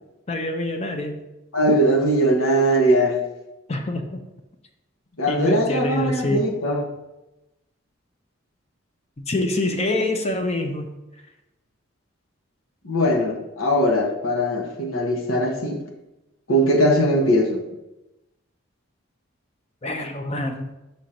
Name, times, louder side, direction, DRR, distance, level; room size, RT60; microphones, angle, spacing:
voice 1, 0.3-1.2 3.7-4.2 5.3-6.4 9.3-10.9 19.8-20.7, left 2 dB, 30° left, 4 dB, 0.6 m, -25 dB
voice 2, 1.5-3.2 5.2-6.9 12.8-15.8 16.5-17.6, equal, 90° left, 1 dB, 1.2 m, -20 dB
5.1 x 4.4 x 5.1 m, 0.97 s
head